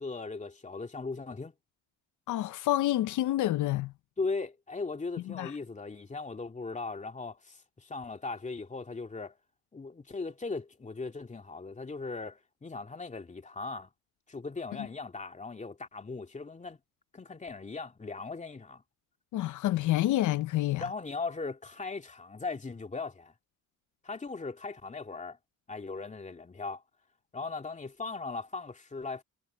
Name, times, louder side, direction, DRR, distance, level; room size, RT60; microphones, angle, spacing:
voice 1, 0.0-1.5 4.2-9.4 9.7-13.9 14.3-16.8 17.1-18.8 20.8-23.3 24.0-25.4 25.7-26.8 27.3-29.2, left 3 dB, 25° left, 2.5 m, -38 dB
voice 2, 2.3-3.9 5.3-5.5 14.8-14.9 19.3-20.8, left 15 dB, 80° left, 0.7 m, -28 dB
cardioid pair, 90°, 30 cm